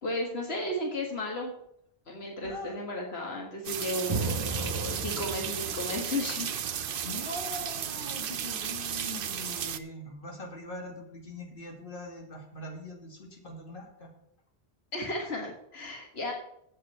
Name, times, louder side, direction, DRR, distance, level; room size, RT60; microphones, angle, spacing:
voice 1, 0.0-1.5 2.1-6.5 14.9-16.3, left 1 dB, 90° left, 1 dB, 1.9 m, -34 dB
voice 2, 2.4-2.8 7.0-14.1, left 1 dB, 60° left, 0 dB, 2.5 m, -42 dB
sound 1, 3.6-9.8, right 8 dB, 65° right, 0.8 m, -34 dB
sound 2, 4.1-7.3, right 4 dB, 30° right, 1.0 m, -36 dB
8.1 x 6.7 x 8.1 m, 0.73 s
omnidirectional pair, 1.0 m